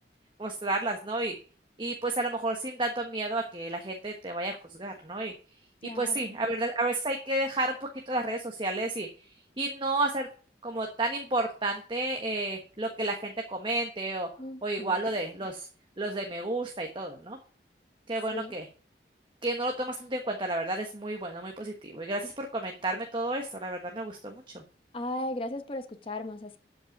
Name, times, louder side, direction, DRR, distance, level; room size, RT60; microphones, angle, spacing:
voice 1, 0.4-1.4 1.8-5.3 5.9-9.1 9.6-10.3 10.6-14.3 14.6-15.7 16.0-17.4 18.1-18.6 19.4-24.6, right 2 dB, 30° right, 3 dB, 1.2 m, -31 dB
voice 2, 5.8-6.3 14.4-14.9 18.3-18.5 24.9-26.6, left 1 dB, 30° left, 6 dB, 1.0 m, -36 dB
12.5 x 5.5 x 5.9 m, 0.40 s
head